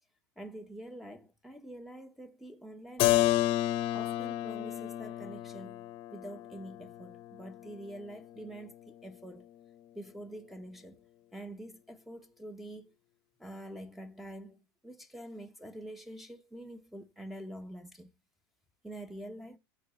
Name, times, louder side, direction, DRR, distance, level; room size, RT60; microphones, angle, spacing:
voice 1, 0.4-3.4 3.9-9.4 9.9-11.0 11.3-12.9 13.4-18.1 18.8-19.6, right 1 dB, ahead, 1.1 m, -46 dB
Keyboard (musical), 3.0-8.6, left 15 dB, 50° left, 1.0 m, -31 dB
10.0 x 4.0 x 7.3 m
hypercardioid pair, 115°, 12 cm